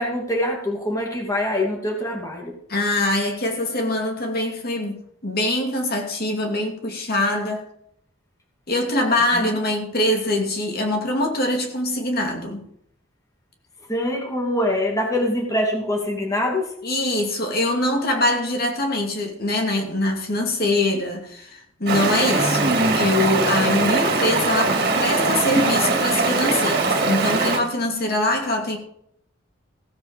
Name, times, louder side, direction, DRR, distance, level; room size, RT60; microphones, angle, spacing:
voice 1, 0.0-2.5 9.3-9.6 13.9-16.7, left 1 dB, 15° left, 2.5 m, -24 dB
voice 2, 2.7-7.6 8.7-12.6 16.8-28.8, left 1 dB, 45° left, 2.7 m, -23 dB
Stream, 21.9-27.6, right 3 dB, 45° right, 2.7 m, -21 dB
16.5 x 8.3 x 5.3 m
head